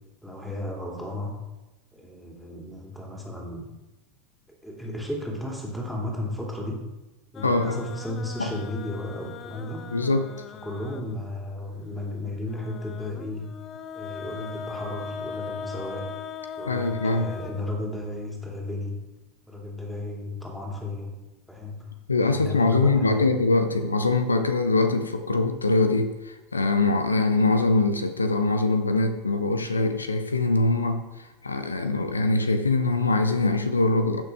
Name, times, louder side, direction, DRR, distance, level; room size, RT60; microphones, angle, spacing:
voice 1, 0.2-1.4 1.9-3.7 4.6-6.9 7.3-9.9 10.6-13.5 13.9-16.1 16.6-19.0 19.5-21.2 21.5-21.9 22.1-23.3, left 1 dB, 5° left, -1 dB, 2.6 m, -34 dB
sound 1, 7.3-11.4 12.5-18.3, left 6 dB, 35° left, 0.5 m, -39 dB
voice 2, 7.4-7.8 8.4-8.5 9.9-10.2 16.7-17.3 22.1-34.2, left 2 dB, 80° left, 9 dB, 0.6 m, -23 dB
14.5 x 6.1 x 3.5 m, 1.0 s
figure-of-eight pair, 85°, 0 cm